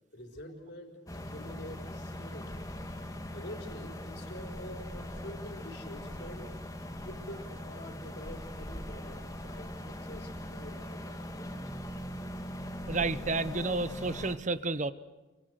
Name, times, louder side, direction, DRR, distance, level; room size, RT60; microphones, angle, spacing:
voice 1, 0.1-2.7 3.3-6.6 6.9-11.2, left 1 dB, 60° left, 4 dB, 4.5 m, -47 dB
sound 1, 1.1-14.4, left 1 dB, 15° left, 2.1 m, -41 dB
voice 2, 12.9-14.9, right 3 dB, 40° right, 14 dB, 0.9 m, -31 dB
29.5 x 24.0 x 8.0 m, 1.2 s
head